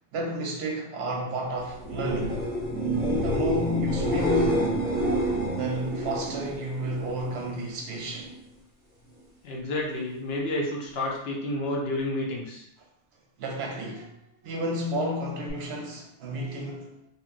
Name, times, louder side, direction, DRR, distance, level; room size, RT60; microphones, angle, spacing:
voice 1, 0.1-2.4 3.2-4.7 5.6-8.3 13.4-14.1 14.4-16.9, equal, 65° right, 0.8 m, -31 dB
sound 1, 1.7-7.5 7.9-8.4 15.5-15.6, right 1 dB, 20° right, 0.8 m, -28 dB
voice 2, 9.4-12.6, left 1 dB, 60° left, 0.9 m, -30 dB
2.8 x 2.6 x 2.5 m
omnidirectional pair, 1.2 m